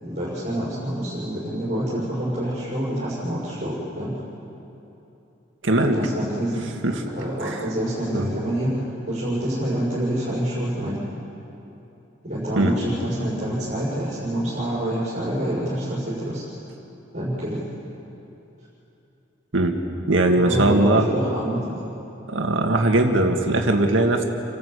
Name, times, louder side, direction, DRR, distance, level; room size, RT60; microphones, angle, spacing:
voice 1, 0.0-4.2 5.8-6.6 6.9-11.0 12.2-16.4 17.1-17.6 20.3-21.8, right 1 dB, 40° right, -9 dB, 6.5 m, -27 dB
voice 2, 5.6-6.0 6.8-7.0 7.4-7.6 8.1-8.3 12.6-12.8 19.5-19.8 20.1-21.1 22.3-24.2, right 2 dB, 85° right, 3 dB, 2.0 m, -20 dB
30.0 x 12.5 x 8.4 m, 2.9 s
head